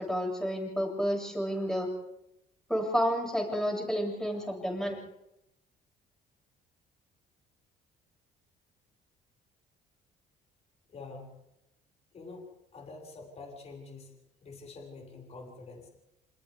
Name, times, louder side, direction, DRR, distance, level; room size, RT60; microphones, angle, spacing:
voice 1, 0.0-1.9 2.7-5.0, equal, 5° left, -1 dB, 7.9 m, -30 dB
voice 2, 10.9-11.3 12.1-12.5 12.7-14.1 14.4-15.9, left 3 dB, 40° left, 0 dB, 6.2 m, -46 dB
28.5 x 28.0 x 3.7 m, 0.87 s
cardioid pair, 110°, 17 cm